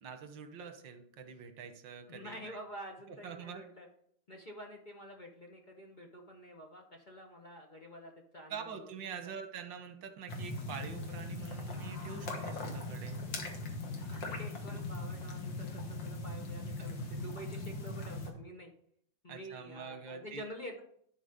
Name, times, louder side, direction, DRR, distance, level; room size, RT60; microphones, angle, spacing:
voice 1, 0.0-2.6 3.2-3.6 8.5-13.2 19.3-20.4, right 6 dB, 90° right, 7 dB, 1.7 m, -45 dB
voice 2, 2.1-3.9 4.3-9.3 14.0-18.7 19.2-20.8, equal, 35° left, 1 dB, 0.8 m, -48 dB
sound 1, 10.3-18.3, left 2 dB, 80° left, 2.1 m, -40 dB
11.0 x 4.2 x 5.1 m, 0.67 s
omnidirectional pair, 1.9 m